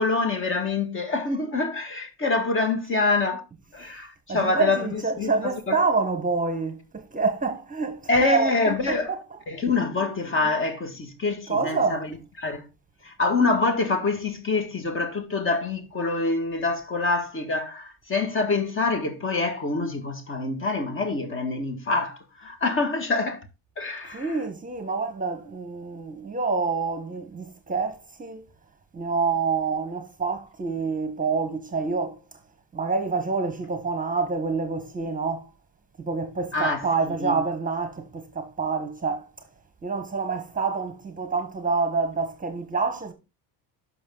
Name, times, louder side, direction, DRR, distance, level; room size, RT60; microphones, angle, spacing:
voice 1, 0.0-3.4 3.7-5.3 5.7-5.8 8.1-9.1 9.5-12.1 12.4-12.7 13.0-23.5 23.8-24.3 36.5-37.4, left 3 dB, 30° left, 2.0 m, -26 dB
voice 2, 4.3-9.0 11.5-12.0 24.1-28.4 28.9-32.2 32.7-35.5 36.0-39.3 39.8-43.1, right 4 dB, 20° right, 1.4 m, -27 dB
11.5 x 6.0 x 4.0 m
cardioid pair, 140°, 40 cm